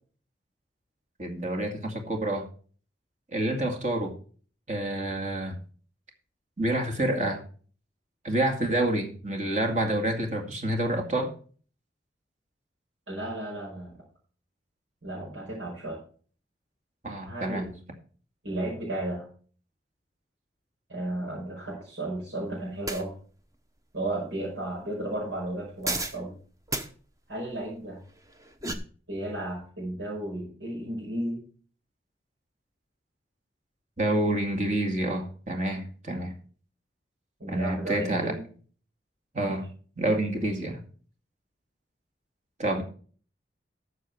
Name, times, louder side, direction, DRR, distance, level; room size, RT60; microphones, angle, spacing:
voice 1, 1.2-2.5 3.3-4.1 4.7-5.6 6.6-7.4 8.2-11.3 17.0-17.7 34.0-36.4 37.5-38.3 39.3-39.6 40.0-40.8 42.6-42.8, right 1 dB, 40° right, 3 dB, 2.2 m, -28 dB
voice 2, 13.1-14.0 15.0-16.0 17.3-17.8 18.4-19.3 20.9-23.1 23.9-26.3 27.3-28.0 29.1-31.4 37.4-38.4 39.4-39.6, right 1 dB, 85° right, -5 dB, 5.1 m, -34 dB
sound 1, 22.9-23.0 25.8-26.2 26.7-26.9 28.3-28.7, right 2 dB, 20° right, 1.0 m, -31 dB
13.5 x 6.7 x 4.6 m, 0.42 s
head